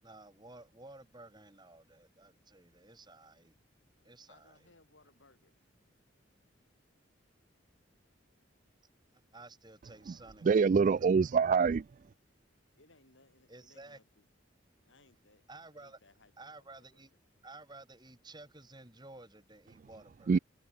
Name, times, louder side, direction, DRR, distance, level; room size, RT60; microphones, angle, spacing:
voice 1, 0.0-3.5 4.0-4.6 9.1-11.2 13.5-14.0 15.5-16.0 16.4-17.1 17.4-20.3, right 2 dB, 25° right, 5.5 m, -53 dB
voice 2, 4.3-5.6 12.7-14.3 14.9-15.5 15.7-17.0, left 2 dB, 85° left, 4.9 m, -65 dB
voice 3, 10.4-11.9 20.3-20.4, right 5 dB, 45° right, 0.3 m, -25 dB
head